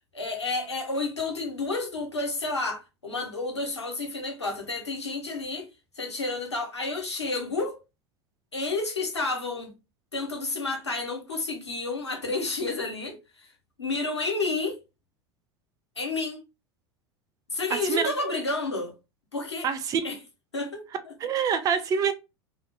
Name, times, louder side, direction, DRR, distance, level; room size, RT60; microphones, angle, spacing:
voice 1, 0.0-5.7 5.9-7.8 8.5-9.7 10.1-13.2 13.8-14.8 16.0-16.4 17.5-18.9 19.3-19.7 20.0-20.2 20.5-21.1, left 3 dB, 80° left, 0.9 m, -30 dB
voice 2, 17.7-18.1 19.6-20.0 21.2-22.1, right 7 dB, 25° right, 0.4 m, -26 dB
2.7 x 2.1 x 3.4 m
figure-of-eight pair, 80°, 14 cm